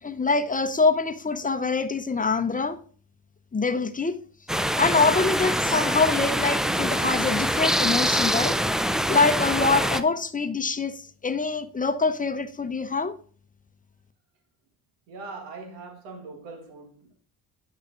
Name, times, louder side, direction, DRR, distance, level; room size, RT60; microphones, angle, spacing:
voice 1, 0.0-2.8 3.5-4.2 4.8-8.6 9.1-13.1, left 4 dB, 20° left, 0.8 m, -24 dB
sound 1, 4.5-10.0, equal, ahead, 0.3 m, -24 dB
voice 2, 15.1-17.1, right 3 dB, 80° right, 1.6 m, -41 dB
10.0 x 5.7 x 2.5 m
hypercardioid pair, 55°, 44 cm